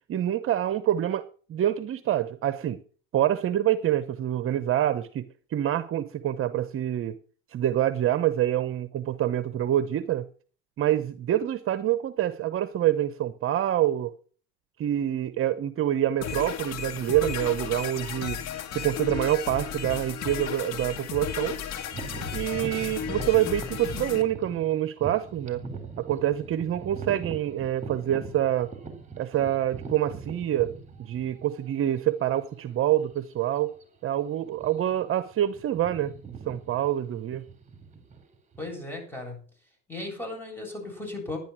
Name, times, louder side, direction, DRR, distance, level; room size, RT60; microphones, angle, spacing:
voice 1, 0.1-1.2 1.5-2.8 3.1-5.2 5.5-7.2 7.5-10.3 10.8-14.1 14.8-18.4 18.7-21.6 22.3-25.6 26.0-28.7 29.2-33.7 34.0-37.4, right 12 dB, 45° right, 13 dB, 0.9 m, -26 dB
sound 1, 16.2-24.2, left 8 dB, 60° left, 2.2 m, -34 dB
sound 2, 21.9-31.7 32.3-32.4 33.1-33.3 33.6-33.8 34.5-35.0 35.3-38.7, right 4 dB, 25° right, 3.7 m, -41 dB
voice 2, 38.6-39.4 39.9-41.4, left 2 dB, 5° left, 1 dB, 7.9 m, -36 dB
11.0 x 10.5 x 6.1 m, 0.41 s
supercardioid pair, 110°, 30 cm